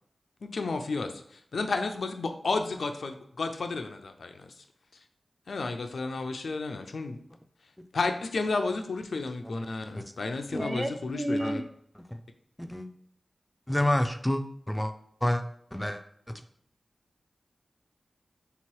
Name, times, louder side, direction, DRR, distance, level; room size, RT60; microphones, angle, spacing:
voice 1, 0.5-4.5 5.5-7.2 7.9-11.6, left 3 dB, 85° left, 6 dB, 0.4 m, -32 dB
voice 2, 10.5-11.6, right 1 dB, 40° right, 6 dB, 0.6 m, -31 dB
voice 3, 13.7-14.9 15.2-15.4 15.7-16.0 16.3-16.4, left 1 dB, 15° left, 8 dB, 0.4 m, -29 dB
3.4 x 2.9 x 4.6 m, 0.66 s
cardioid pair, 50°, 0 cm